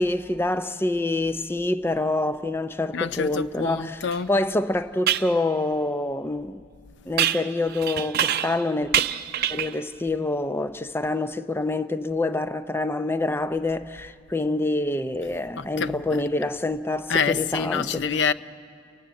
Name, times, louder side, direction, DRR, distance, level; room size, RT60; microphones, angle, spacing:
voice 1, 0.0-6.6 7.1-9.0 9.5-18.0, left 2 dB, 15° left, 0.5 m, -26 dB
voice 2, 2.9-4.3 15.6-16.2 17.1-18.3, left 5 dB, 75° left, 0.6 m, -26 dB
sound 1, 4.1-4.2 5.1-5.3 7.2-8.6 8.9-9.8, right 10 dB, 55° right, 0.6 m, -25 dB
29.5 x 18.0 x 7.7 m
head